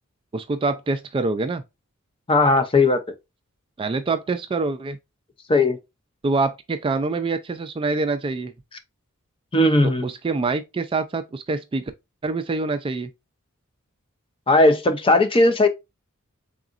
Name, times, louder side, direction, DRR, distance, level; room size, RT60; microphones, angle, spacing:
voice 1, 0.3-1.6 3.8-5.0 6.2-8.5 9.8-11.9 12.2-13.1, right 3 dB, 25° right, 0.3 m, -25 dB
voice 2, 2.3-3.0 5.5-5.8 9.5-10.1 14.5-15.7, left 2 dB, 25° left, 0.5 m, -17 dB
4.1 x 3.6 x 2.4 m
head